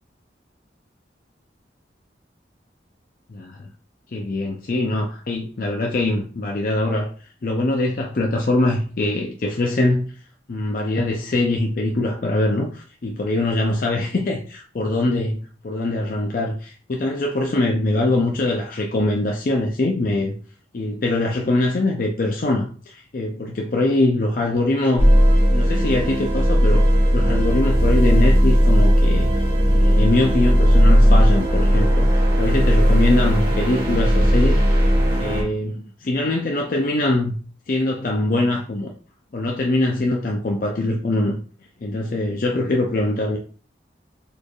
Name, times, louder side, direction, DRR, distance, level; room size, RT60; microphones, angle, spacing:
voice 1, 3.3-3.7 4.1-7.1 7.4-10.1 10.5-20.3 20.7-25.1 25.5-26.9 27.1-34.6 35.2-37.4 37.7-38.9 39.3-41.4 41.8-43.4, left 2 dB, 50° left, 0.5 m, -23 dB
sound 1, 25.0-35.4, equal, 30° right, 1.5 m, -16 dB
4.2 x 3.2 x 2.3 m
head